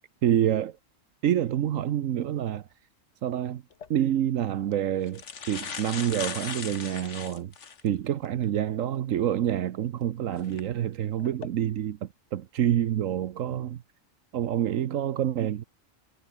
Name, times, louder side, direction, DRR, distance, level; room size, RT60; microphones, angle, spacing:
voice 1, 0.2-0.8 1.2-2.7 3.2-3.6 3.9-7.5 7.8-13.8 14.3-15.6, right 11 dB, 80° right, 1.2 m, -27 dB
sound 1, 3.7-3.9 4.7-4.8 5.1-7.9 8.4-8.5 10.4-10.6 11.2-11.5, left 6 dB, 60° left, 1.7 m, -38 dB
omnidirectional pair, 1.4 m